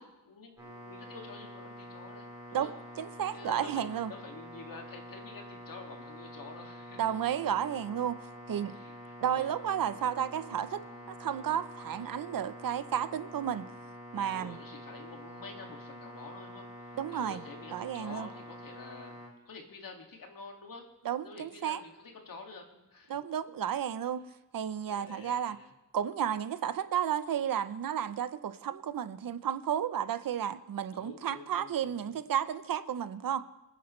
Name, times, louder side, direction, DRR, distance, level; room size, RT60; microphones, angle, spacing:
voice 1, 0.0-2.7 3.3-7.1 8.6-9.5 10.8-11.1 14.3-20.9 21.2-23.2 24.9-25.7 30.9-32.2, left 4 dB, 80° left, 2 dB, 2.3 m, -49 dB
sound 1, 0.6-19.3, equal, 10° right, 4.1 m, -47 dB
voice 2, 2.5-4.1 7.0-8.2 8.5-8.8 9.2-13.6 14.1-14.6 16.9-17.4 17.7-18.3 21.0-21.8 23.1-24.2 24.5-25.6 25.9-33.4, right 9 dB, 85° right, 13 dB, 0.7 m, -32 dB
26.5 x 10.0 x 3.2 m, 1.1 s
wide cardioid pair, 160°, 33 cm